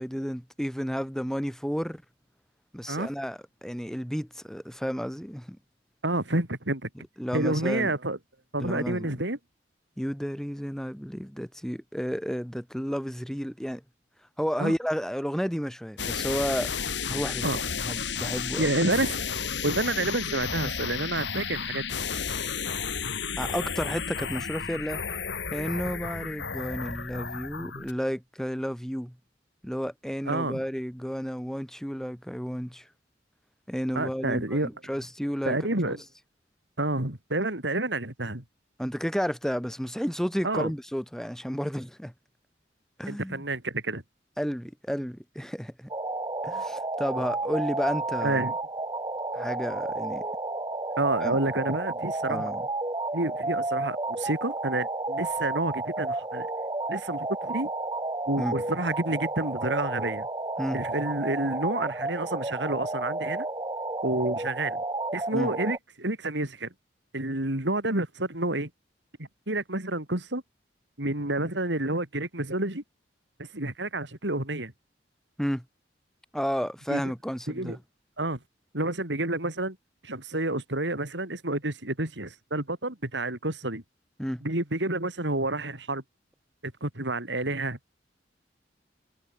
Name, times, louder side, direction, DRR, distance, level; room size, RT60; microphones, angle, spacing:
voice 1, 0.0-2.0 2.7-5.6 7.2-7.9 8.6-9.1 10.0-13.8 14.4-16.7 17.1-17.6 17.9-18.7 23.4-25.0 25.5-29.1 29.6-32.9 33.7-35.6 35.8-36.0 38.8-42.1 43.0-43.4 44.4-45.9 46.4-48.4 49.3-50.2 51.2-51.4 52.3-52.6 58.4-58.6 60.6-60.8 65.3-65.5 75.4-75.6 76.3-77.8 84.2-84.4, equal, 5° left, 6.4 m, -32 dB
voice 2, 6.0-6.9 7.3-8.2 8.5-9.4 14.6-14.7 17.4-17.6 18.6-19.2 19.6-22.0 30.3-30.6 33.9-34.7 35.4-36.0 36.8-38.4 40.4-40.7 43.1-44.0 48.2-48.5 51.0-52.5 53.1-56.5 56.9-57.7 58.3-60.3 60.7-63.5 64.0-64.8 65.1-66.7 67.1-68.7 69.5-70.4 71.0-72.8 73.5-74.7 76.9-77.1 77.5-77.8 78.2-78.4 78.7-79.8 80.0-83.8 84.4-86.0 86.6-87.8, right 2 dB, 80° right, 4.0 m, -29 dB
sound 1, 16.0-27.9, left 6 dB, 80° left, 3.0 m, -32 dB
sound 2, 45.9-65.8, right 2 dB, 20° right, 1.8 m, -32 dB
head